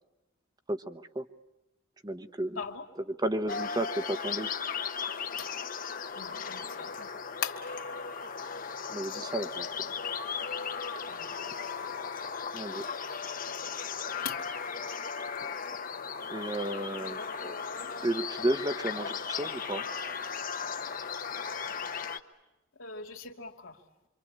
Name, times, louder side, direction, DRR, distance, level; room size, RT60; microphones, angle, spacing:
voice 1, 0.7-1.2 2.0-2.6 3.1-4.5 8.9-9.9 12.5-12.8 16.3-17.5 18.0-19.9, right 1 dB, 20° right, 9 dB, 1.1 m, -33 dB
sound 1, 3.5-22.2, left 6 dB, 45° left, 1.1 m, -36 dB
voice 2, 6.1-7.1 7.4-7.6 9.0-9.2 11.0-11.3 12.6-12.7 13.1-13.2 14.2-14.4 16.4-16.9 17.8-18.0 22.8-23.8, left 7 dB, 90° left, 2 dB, 2.6 m, -40 dB
26.5 x 25.5 x 8.8 m, 0.98 s
head